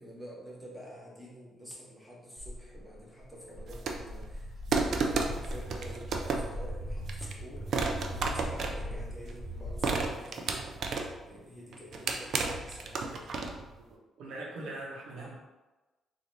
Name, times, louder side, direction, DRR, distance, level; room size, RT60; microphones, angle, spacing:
voice 1, 0.0-7.7 8.0-10.7 11.2-13.3, equal, 10° left, -5 dB, 1.3 m, -48 dB
Walk footsteps, 2.4-10.1, equal, 25° left, 1.3 m, -39 dB
sound 1, 3.7-4.2 4.7-6.6 7.1-7.3 7.7-9.3 9.8-11.3 11.7-13.7, right 4 dB, 60° right, 0.4 m, -32 dB
voice 2, 13.9-15.4, right 2 dB, 85° right, -3 dB, 0.8 m, -41 dB
3.8 x 2.5 x 3.2 m, 1.1 s
cardioid pair, 90°, 0 cm